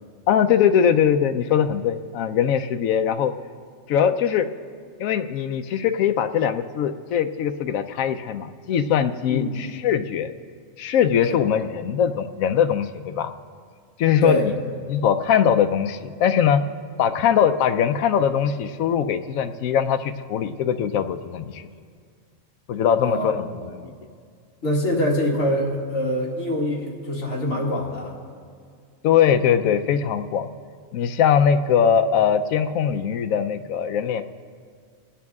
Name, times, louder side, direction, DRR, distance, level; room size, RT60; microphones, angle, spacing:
voice 1, 0.3-3.3 3.9-4.5 5.0-10.3 10.8-13.3 14.0-14.5 14.9-16.6 17.0-21.7 22.7-23.9 29.0-30.5 30.9-34.2, left 8 dB, 80° left, 9 dB, 1.0 m, -21 dB
voice 2, 14.2-14.5 23.0-23.7 24.6-28.1, left 1 dB, 60° left, -4 dB, 2.2 m, -24 dB
23.5 x 8.6 x 3.6 m, 2.1 s
omnidirectional pair, 1.4 m